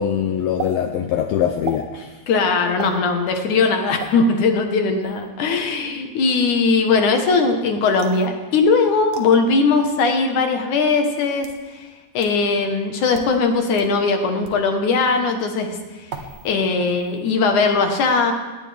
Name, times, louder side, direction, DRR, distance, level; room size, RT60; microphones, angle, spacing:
voice 1, 0.0-2.2, left 9 dB, 80° left, 6 dB, 2.1 m, -22 dB
sound 1, 0.6-0.7 1.6-1.8 2.8-3.0 4.0-4.1 5.0-5.3 8.0-8.3 9.1-9.3 10.2-10.3 11.2-11.6 12.2-12.3 13.0-13.3 13.8-13.9 14.4-14.6 16.1-16.5 16.8-17.2, right 6 dB, 60° right, 2.2 m, -34 dB
voice 2, 2.3-11.5 11.7-11.9 12.1-16.1 16.4-18.3, left 4 dB, 65° left, 4 dB, 2.1 m, -19 dB
19.0 x 19.0 x 3.5 m, 1.2 s
omnidirectional pair, 5.1 m